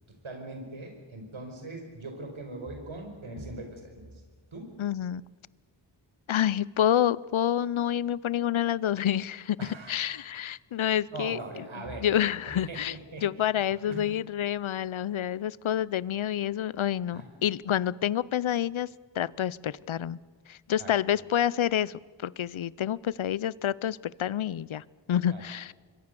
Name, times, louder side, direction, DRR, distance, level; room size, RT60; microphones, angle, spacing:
voice 1, 0.2-4.2 4.5-4.7 9.6-10.2 11.1-13.5 13.8-14.0 17.1-17.3 20.8-21.2 25.3-25.4, right 2 dB, 90° right, 4 dB, 5.1 m, -41 dB
voice 2, 4.8-5.2 6.3-9.6 9.9-11.4 12.0-12.9 13.2-18.9 19.2-20.2 20.5-25.7, left 10 dB, 85° left, 22 dB, 0.6 m, -28 dB
26.5 x 21.5 x 6.9 m, 1.4 s
wide cardioid pair, 55°, 47 cm